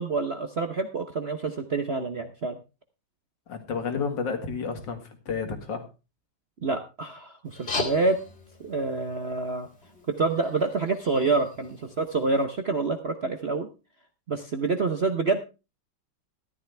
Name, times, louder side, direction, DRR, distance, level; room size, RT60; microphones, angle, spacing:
voice 1, 0.0-2.6 6.6-8.2 8.6-9.7 10.1-13.7 14.3-15.4, right 3 dB, 55° right, 7 dB, 0.7 m, -27 dB
voice 2, 3.5-5.8, left 5 dB, 55° left, 6 dB, 2.5 m, -31 dB
sound 1, 7.5-12.4, left 3 dB, 25° left, 2.5 m, -39 dB
13.5 x 12.0 x 3.4 m, 0.30 s
omnidirectional pair, 2.4 m